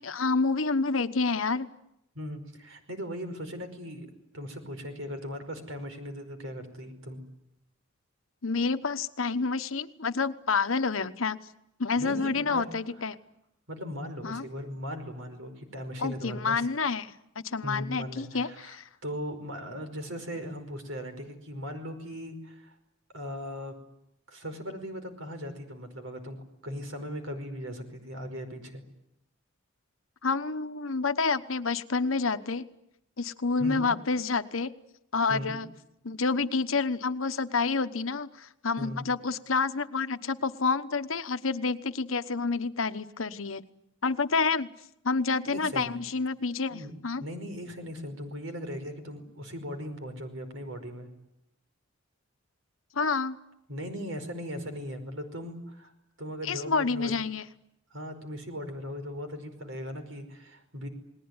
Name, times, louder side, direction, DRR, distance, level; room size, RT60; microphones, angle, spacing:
voice 1, 0.0-1.7 8.4-11.4 11.8-13.2 14.2-14.4 16.0-17.1 17.4-18.9 30.2-32.7 33.2-34.7 35.1-35.7 36.0-43.6 44.0-44.7 45.0-47.2 52.9-53.4 56.4-57.4, left 4 dB, 80° left, 11 dB, 1.2 m, -28 dB
voice 2, 2.2-4.1 4.3-7.2 12.0-12.7 13.7-16.7 17.6-18.8 19.0-22.8 23.1-23.7 24.3-28.8 33.6-33.9 35.3-35.6 38.8-39.1 45.5-45.9 46.7-46.9 47.2-51.1 53.7-55.9 56.2-57.1 57.9-60.9, equal, 75° right, 7 dB, 5.2 m, -38 dB
29.0 x 20.0 x 9.7 m, 0.85 s
head